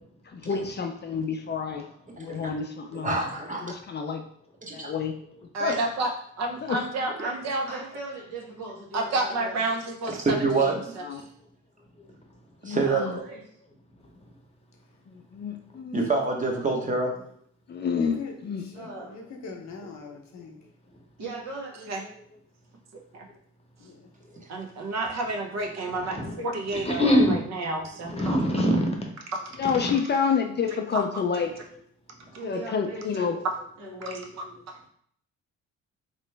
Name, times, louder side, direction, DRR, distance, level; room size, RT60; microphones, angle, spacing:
voice 1, 0.3-1.8 2.2-3.2 3.6-4.2 4.7-5.1 5.6-5.8 6.6-6.8 11.0-11.2 12.6-13.1 15.1-16.0 17.7-18.2 18.4-18.6 29.6-31.5 32.4-33.4, left 6 dB, 35° left, 5 dB, 0.4 m, -28 dB
voice 2, 2.2-2.5 2.9-3.7 4.6-4.9 5.7-5.8 10.1-10.9 12.6-13.0 15.9-17.1 25.8-25.9, right 3 dB, 25° right, 1 dB, 0.9 m, -26 dB
voice 3, 5.5-6.1 6.4-7.8 8.9-11.0 21.9-22.0 22.9-23.3 24.5-28.3 30.9-31.0, right 2 dB, 60° right, 2 dB, 0.8 m, -30 dB
voice 4, 7.1-9.6 12.8-13.4 18.7-19.1 21.2-22.1 32.1-33.4 33.8-34.3, right 2 dB, 85° right, -4 dB, 1.5 m, -39 dB
voice 5, 18.0-20.7 23.8-24.1, left 4 dB, 65° left, 2 dB, 0.8 m, -42 dB
voice 6, 25.9-26.3 26.7-27.5 28.0-28.9, equal, 20° left, 1 dB, 0.9 m, -24 dB
3.2 x 3.0 x 3.2 m, 0.63 s
cardioid pair, 90°, 30 cm